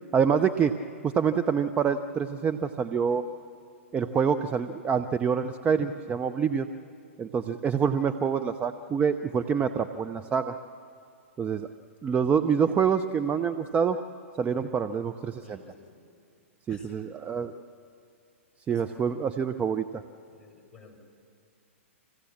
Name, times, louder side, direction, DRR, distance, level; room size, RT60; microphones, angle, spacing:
voice 1, 0.1-0.8 1.0-3.2 3.9-6.7 7.2-10.6 11.4-11.7 12.0-14.0 14.4-15.6 16.7-17.6 18.7-20.0, right 7 dB, 20° right, 10 dB, 0.6 m, -26 dB
voice 2, 15.4-16.0 16.7-17.0 18.7-18.8 20.3-21.0, left 3 dB, 10° left, -1 dB, 6.5 m, -53 dB
26.5 x 16.0 x 7.2 m, 2.4 s
hypercardioid pair, 120°, 7 cm